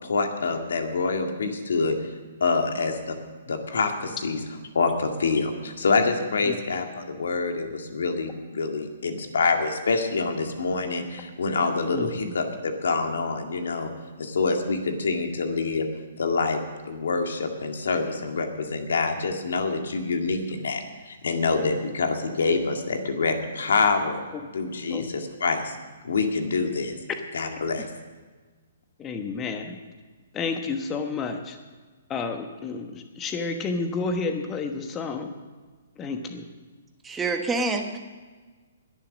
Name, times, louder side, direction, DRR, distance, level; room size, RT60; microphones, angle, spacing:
voice 1, 0.0-2.1 2.4-3.2 3.5-4.4 4.7-13.9 14.2-15.9 16.2-16.6 16.9-24.2 24.5-25.8 26.0-26.9 27.3-27.9, left 4 dB, 75° left, 4 dB, 2.0 m, -26 dB
voice 2, 11.9-12.3 24.9-25.0 29.0-29.8 30.3-31.6 32.1-35.3 36.0-36.5, left 4 dB, 20° left, 5 dB, 1.1 m, -30 dB
voice 3, 37.0-38.0, right 3 dB, 10° right, 5 dB, 1.2 m, -26 dB
21.0 x 7.2 x 6.4 m, 1.4 s
hypercardioid pair, 140°, 0 cm